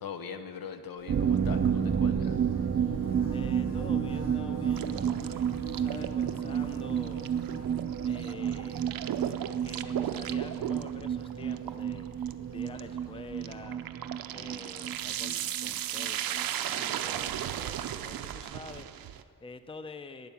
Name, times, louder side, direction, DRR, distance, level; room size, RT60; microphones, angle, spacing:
voice 1, 0.0-2.4, left 6 dB, 90° left, 7 dB, 0.9 m, -41 dB
Bird / Buzz, 1.0-13.6, equal, 65° left, 3.5 m, -46 dB
sound 1, 1.1-16.5 16.7-16.8 17.1-17.2, right 8 dB, 40° right, 0.4 m, -31 dB
voice 2, 2.9-7.8 8.1-8.9 9.2-12.1 12.5-13.8 14.3-20.3, left 3 dB, 15° left, 10 dB, 0.5 m, -47 dB
sound 2, 4.8-19.2, right 10 dB, 90° right, 0.6 m, -37 dB
12.0 x 9.2 x 7.1 m, 2.2 s
wide cardioid pair, 130°, 34 cm